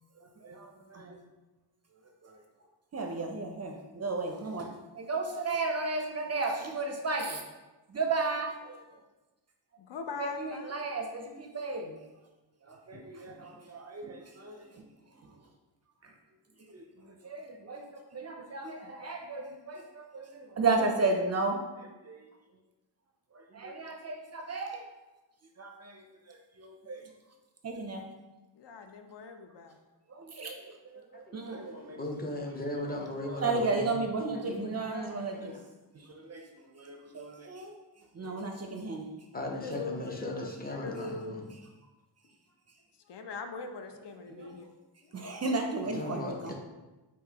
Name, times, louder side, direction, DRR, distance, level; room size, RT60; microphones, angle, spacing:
voice 1, 0.4-1.2 2.2-2.4 2.9-4.7 5.0-7.4 7.9-8.8 10.2-12.0 12.7-14.8 16.0-16.1 16.7-22.2 23.3-24.8 25.6-25.7 26.9-27.0 27.6-28.0 30.1-30.6 30.9-32.0 33.2-35.5 36.2-37.7 38.1-39.1 44.3-44.5 45.1-46.5, right 3 dB, 40° right, 3 dB, 0.4 m, -34 dB
voice 2, 9.8-10.9 28.5-29.8 34.7-35.3 39.5-41.5 43.0-44.7 45.0-45.4, left 4 dB, 70° left, 6 dB, 0.5 m, -42 dB
voice 3, 31.1-31.5 31.9-34.0 34.3-34.8 35.5-35.6 39.3-41.5 45.8-46.5, left 1 dB, 20° left, 1 dB, 0.6 m, -37 dB
5.8 x 2.5 x 2.8 m, 1.1 s
wide cardioid pair, 130°, 43 cm